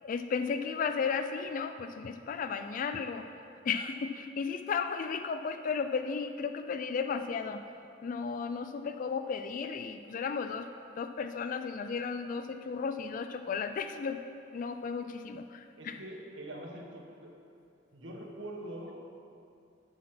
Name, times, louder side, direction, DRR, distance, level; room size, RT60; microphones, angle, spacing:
voice 1, 0.0-3.3 3.7-7.6 8.0-10.7 11.0-14.2 14.5-16.0, left 5 dB, 45° left, 8 dB, 0.3 m, -34 dB
voice 2, 15.8-17.3 17.9-19.1, right 1 dB, 90° right, -1 dB, 1.5 m, -44 dB
8.3 x 6.3 x 5.9 m, 2.5 s
head